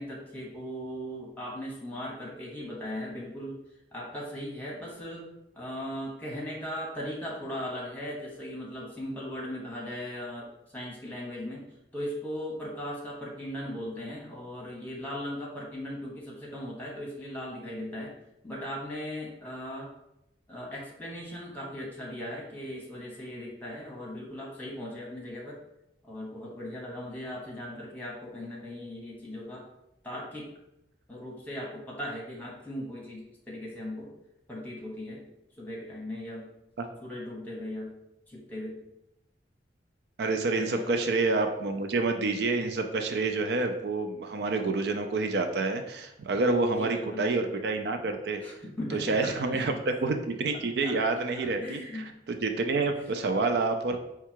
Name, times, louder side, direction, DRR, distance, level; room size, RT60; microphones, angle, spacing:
voice 1, 0.0-3.6 3.9-5.3 5.5-11.6 11.9-18.1 18.4-19.9 20.5-25.6 26.0-29.7 30.0-30.5 31.1-34.1 34.5-35.2 35.6-36.5 37.0-37.9 38.3-38.7 40.6-41.0 46.7-47.2 48.4-49.8 50.8-52.1, left 1 dB, 10° left, -4 dB, 1.0 m, -38 dB
voice 2, 40.2-48.4 48.9-54.0, right 3 dB, 65° right, 6 dB, 0.4 m, -28 dB
4.7 x 2.3 x 4.4 m, 0.85 s
head